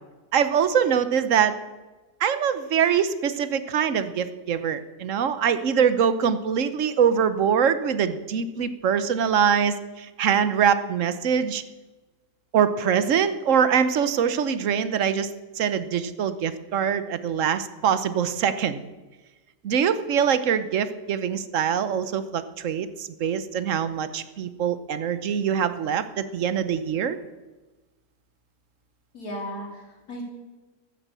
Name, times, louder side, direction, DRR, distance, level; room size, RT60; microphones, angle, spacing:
voice 1, 0.3-1.6 2.2-11.6 12.5-18.8 19.6-27.2, right 7 dB, 60° right, 13 dB, 1.1 m, -23 dB
voice 2, 29.1-30.2, equal, 70° left, -1 dB, 3.7 m, -35 dB
13.5 x 7.8 x 8.1 m, 1.2 s
omnidirectional pair, 1.6 m